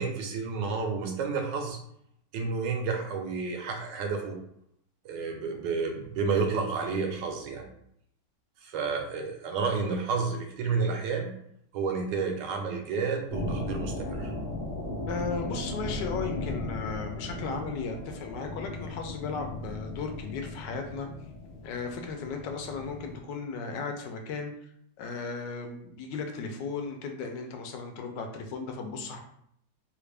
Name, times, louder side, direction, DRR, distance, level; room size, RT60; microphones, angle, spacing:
voice 1, 0.0-1.8 2.3-4.4 5.0-7.6 8.6-11.3 11.7-14.3, right 5 dB, 80° right, 3 dB, 1.3 m, -30 dB
sound 1, 13.3-23.2, left 2 dB, 55° left, 0.8 m, -36 dB
voice 2, 15.1-21.1 21.6-24.7 25.0-29.2, left 4 dB, 80° left, 4 dB, 1.2 m, -36 dB
3.2 x 2.4 x 3.3 m, 0.71 s
omnidirectional pair, 1.9 m